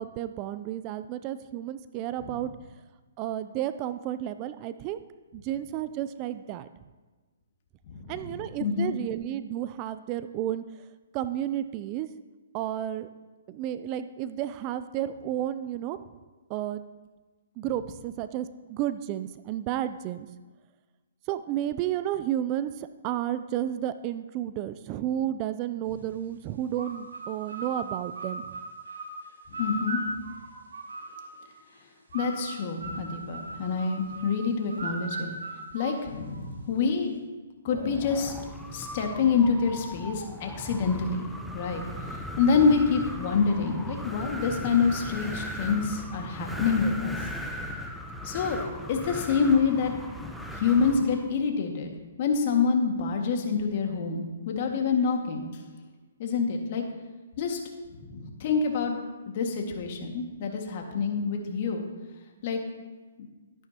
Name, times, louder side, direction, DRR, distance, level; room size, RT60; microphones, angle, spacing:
voice 1, 0.0-2.5 3.2-5.0 5.3-6.7 8.1-10.6 11.1-12.1 12.5-13.1 13.5-16.0 16.5-16.8 17.6-20.3 21.3-28.5, right 12 dB, 30° right, 12 dB, 0.4 m, -32 dB
voice 2, 7.9-8.9 29.6-30.0 32.1-35.3 35.7-37.1 37.6-38.3 38.7-41.8 42.4-47.1 48.2-48.6 48.9-49.9 50.5-51.9 52.2-55.4 56.2-56.8 57.4-57.6 58.0-61.9 62.4-62.6 63.2-63.3, left 5 dB, 45° left, 2 dB, 1.8 m, -27 dB
sound 1, 26.7-31.5 32.1-36.6, right 2 dB, 80° right, 2.4 m, -38 dB
Wind, 37.7-51.3, equal, ahead, 0.8 m, -38 dB
13.0 x 11.0 x 2.9 m, 1.3 s
hypercardioid pair, 140°, 0 cm